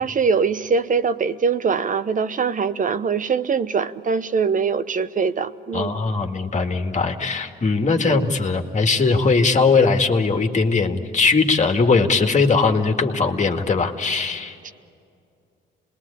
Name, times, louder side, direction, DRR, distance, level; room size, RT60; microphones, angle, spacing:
voice 1, 0.0-6.0 8.0-8.2 14.6-14.7, right 5 dB, 40° right, 0.9 m, -22 dB
voice 2, 5.7-14.5, left 4 dB, 35° left, 2.1 m, -20 dB
27.5 x 21.0 x 8.6 m
cardioid pair, 90°, 20 cm